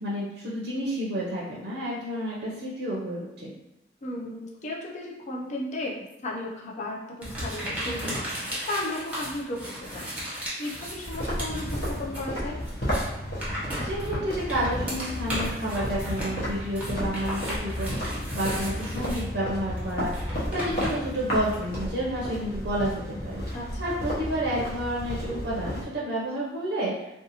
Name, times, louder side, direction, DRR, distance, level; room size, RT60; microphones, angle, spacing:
voice 1, 0.0-3.5 13.8-18.0 18.3-26.9, equal, 65° right, -5 dB, 0.5 m, -30 dB
voice 2, 4.0-10.1 10.6-12.6 23.5-23.8, left 1 dB, 40° left, -3 dB, 0.4 m, -35 dB
sound 1, 7.2-12.3 12.6-21.6, equal, 10° right, 0.9 m, -35 dB
sound 2, 11.1-25.8, equal, 55° left, 0.8 m, -33 dB
2.5 x 2.3 x 2.7 m, 0.90 s
head